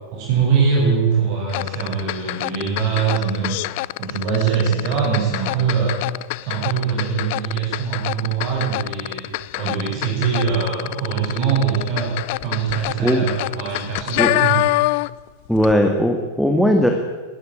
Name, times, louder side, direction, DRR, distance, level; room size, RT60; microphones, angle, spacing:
voice 1, 0.1-3.6 4.0-5.9 6.4-9.3 9.6-12.1 12.4-14.6, right 6 dB, 45° right, -3 dB, 7.5 m, -22 dB
sound 1, 1.5-15.3 15.5-15.7, left 21 dB, 50° left, 0.6 m, -26 dB
voice 2, 15.5-16.9, equal, ahead, 4 dB, 2.2 m, -18 dB
21.5 x 16.5 x 9.2 m, 1.4 s
figure-of-eight pair, 90°, 0 cm